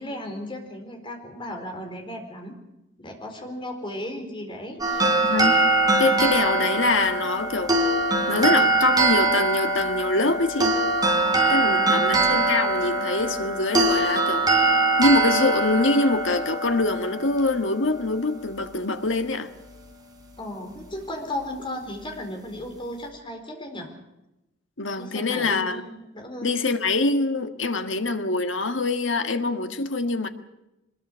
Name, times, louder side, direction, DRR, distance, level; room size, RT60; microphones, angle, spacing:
voice 1, 0.0-2.5 3.0-5.1 11.6-12.1 20.4-23.9 24.9-26.5, left 1 dB, 25° left, 4.3 m, -35 dB
sound 1, 4.8-18.0, right 2 dB, 20° right, 3.8 m, -22 dB
voice 2, 6.0-7.8 8.3-10.7 11.5-14.5 15.0-19.5 24.8-25.8 26.4-30.3, left 2 dB, 80° left, 1.7 m, -24 dB
24.0 x 21.0 x 6.4 m
head